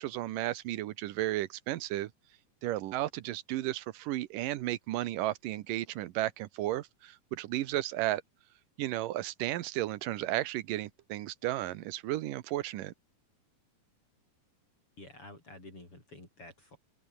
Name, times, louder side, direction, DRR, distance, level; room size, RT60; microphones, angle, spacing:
voice 1, 0.0-2.1 2.6-8.2 8.8-12.9, right 15 dB, 75° right, 2.5 m, -34 dB
voice 2, 15.0-16.8, left 2 dB, 35° left, 8.3 m, -50 dB
open air
omnidirectional pair, 4.1 m